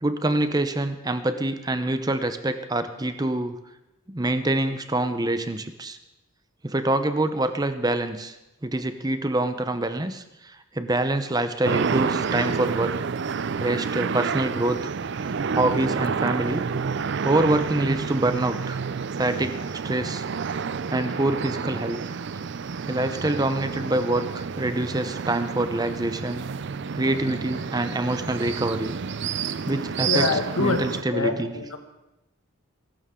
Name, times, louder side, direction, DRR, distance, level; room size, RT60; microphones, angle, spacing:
voice 1, 0.0-3.6 4.1-6.0 6.6-8.4 8.6-12.9 13.6-14.9 15.5-16.6 17.2-18.8 19.2-20.3 20.9-22.0 22.9-26.4 26.9-28.9 29.7-30.3 30.6-31.6, right 2 dB, 20° right, 9 dB, 0.7 m, -25 dB
sound 1, 11.6-31.0, right 5 dB, 55° right, 0.4 m, -29 dB
voice 2, 30.1-30.8 31.1-31.8, left 4 dB, 85° left, 5 dB, 1.8 m, -25 dB
22.5 x 12.5 x 3.7 m, 0.94 s
head